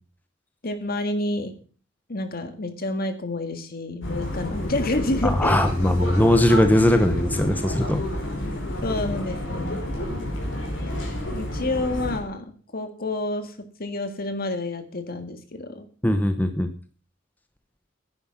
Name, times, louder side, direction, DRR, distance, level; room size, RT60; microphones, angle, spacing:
voice 1, 0.6-1.5 2.1-5.7 8.8-9.9 11.3-12.5 12.7-13.5 13.8-15.9, left 2 dB, 50° left, 8 dB, 1.8 m, -29 dB
sound 1, 4.0-12.2, left 1 dB, 70° left, 5.0 m, -29 dB
voice 2, 5.2-8.0 16.0-16.7, left 1 dB, 10° left, 8 dB, 0.8 m, -20 dB
10.0 x 10.0 x 5.8 m, 0.41 s
head